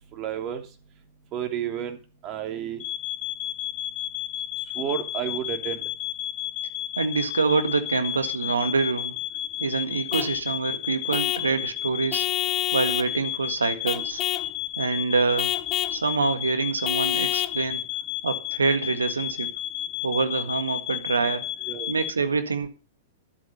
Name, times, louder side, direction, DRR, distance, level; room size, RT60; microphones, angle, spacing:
voice 1, 0.1-0.6 1.3-2.0 2.2-2.8 4.7-5.8 21.7-21.9, right 9 dB, 35° right, 6 dB, 3.1 m, -31 dB
sound 1, 2.8-22.1, left 13 dB, 50° left, 1.5 m, -32 dB
voice 2, 7.0-9.1 9.6-12.3 12.7-14.2 14.8-15.5 15.9-17.8 18.2-19.5 20.0-21.5 21.9-22.7, right 4 dB, 85° right, 10 dB, 1.7 m, -26 dB
Vehicle horn car horn honking / Truck, 10.1-10.4 11.1-11.5 12.1-13.1 13.9-14.5 15.4-16.0 16.9-17.6, left 13 dB, 35° left, 1.0 m, -27 dB
12.5 x 8.1 x 5.4 m, 0.34 s
hypercardioid pair, 105°, 0 cm